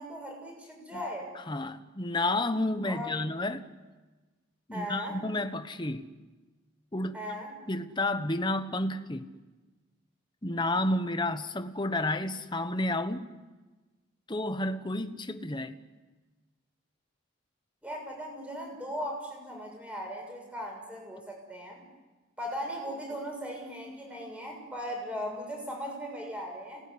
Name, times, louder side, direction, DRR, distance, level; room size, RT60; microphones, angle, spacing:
voice 1, 0.0-1.3 2.8-3.2 4.7-5.2 7.1-7.5 17.8-21.8 22.4-26.8, equal, 5° right, 6.7 m, -38 dB
voice 2, 1.5-3.7 4.7-6.1 6.9-7.2 7.7-9.3 10.4-13.3 14.3-15.7, left 2 dB, 20° left, 1.1 m, -31 dB
30.0 x 19.5 x 9.9 m
head